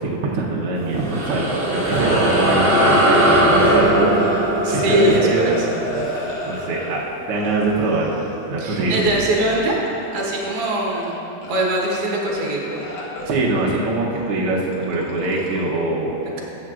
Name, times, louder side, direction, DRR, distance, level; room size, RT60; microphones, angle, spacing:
voice 1, 0.0-4.1 4.7-5.5 6.0-7.0 7.3-9.1 13.3-16.4, right 2 dB, 80° right, -4 dB, 1.2 m, -23 dB
sound 1, 0.8-7.6, right 1 dB, 30° right, 1.6 m, -20 dB
sound 2, 3.3-7.0 7.3-8.6 9.0-10.5 10.8-11.1 11.4-12.5 12.7-15.6, equal, 80° left, 0.9 m, -34 dB
voice 2, 4.6-5.8 8.6-9.8 10.1-11.2 11.5-12.8, right 1 dB, 60° right, -3 dB, 1.8 m, -22 dB
15.0 x 7.6 x 2.4 m, 2.9 s
omnidirectional pair, 3.8 m